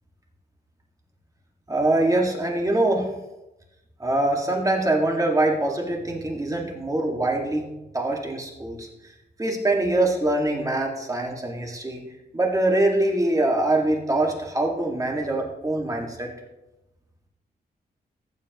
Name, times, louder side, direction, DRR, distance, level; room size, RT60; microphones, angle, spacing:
voice 1, 1.7-3.1 4.0-7.6 7.9-8.9 9.4-12.0 12.3-16.3, right 2 dB, 20° right, 0 dB, 2.0 m, -23 dB
14.5 x 7.3 x 3.0 m, 0.98 s
cardioid pair, 90°, 18 cm